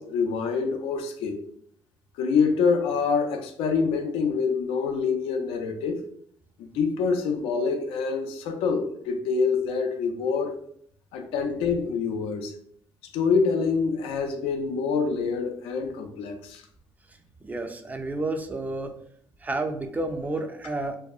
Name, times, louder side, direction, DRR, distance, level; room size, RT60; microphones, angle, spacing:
voice 1, 0.0-1.4 2.2-6.0 6.6-10.6 11.1-12.5 13.1-16.6, left 5 dB, 90° left, 5 dB, 0.4 m, -26 dB
voice 2, 17.4-18.9 19.4-20.9, right 2 dB, 15° right, 6 dB, 0.3 m, -30 dB
2.6 x 2.1 x 2.3 m, 0.66 s
cardioid pair, 90°, 9 cm